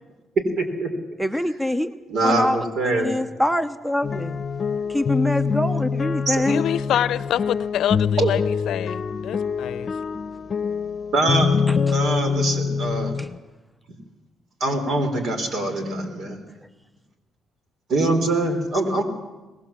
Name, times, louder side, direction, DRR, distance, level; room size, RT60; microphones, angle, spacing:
voice 1, 0.6-0.9 2.1-3.1 6.3-6.4 8.2-8.3 10.4-10.5 11.1-11.5 11.9-13.1 14.6-16.4 17.9-19.0, right 2 dB, 65° right, 7 dB, 4.2 m, -23 dB
voice 2, 1.2-1.9 2.2-2.6 3.0-4.4 4.9-6.6 11.9-12.0, left 1 dB, 5° right, 12 dB, 0.8 m, -24 dB
sound 1, 4.0-13.4, left 5 dB, 45° left, 0.8 m, -25 dB
voice 3, 6.5-9.9, left 11 dB, 75° left, 17 dB, 0.6 m, -26 dB
23.5 x 19.5 x 7.4 m, 1.2 s
cardioid pair, 90°, 0 cm